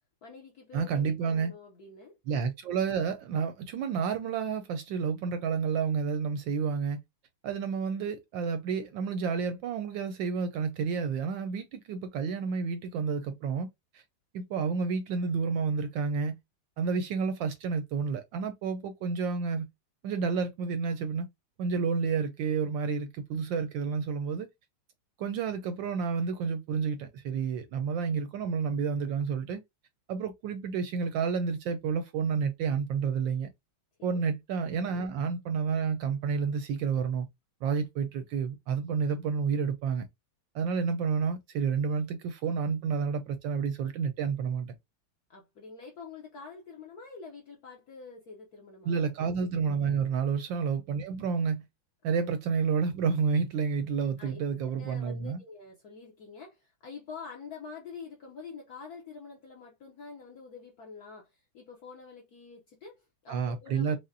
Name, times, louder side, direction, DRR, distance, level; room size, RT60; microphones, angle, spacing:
voice 1, 0.2-2.2 34.0-34.3 45.3-49.1 50.0-50.3 54.2-54.4 54.8-64.0, left 5 dB, 65° left, 0.9 m, -47 dB
voice 2, 0.7-1.5 2.3-7.0 7.4-13.7 13.9-14.0 14.3-16.4 16.8-19.7 20.0-21.3 21.6-24.5 25.2-29.6 30.1-33.5 34.0-37.3 37.6-40.1 40.5-44.7 48.8-51.6 52.0-55.4 63.3-64.0, right 6 dB, 75° right, 1.1 m, -30 dB
4.9 x 2.0 x 2.6 m
omnidirectional pair, 2.4 m